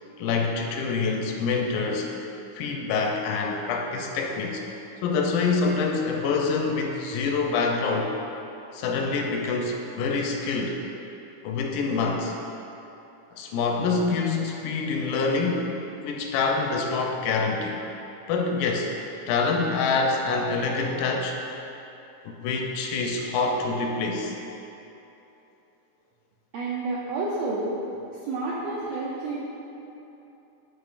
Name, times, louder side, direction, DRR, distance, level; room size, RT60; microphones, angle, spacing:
voice 1, 0.2-2.1 2.5-4.6 5.0-8.2 8.7-10.8 11.4-12.3 13.3-17.8 18.3-18.9 19.3-21.4 22.2-24.3, left 4 dB, 80° left, 1 dB, 2.0 m, -26 dB
voice 2, 26.5-27.8 28.2-29.4, right 3 dB, 80° right, -5 dB, 1.5 m, -29 dB
8.7 x 5.9 x 2.4 m, 3.0 s
omnidirectional pair, 3.8 m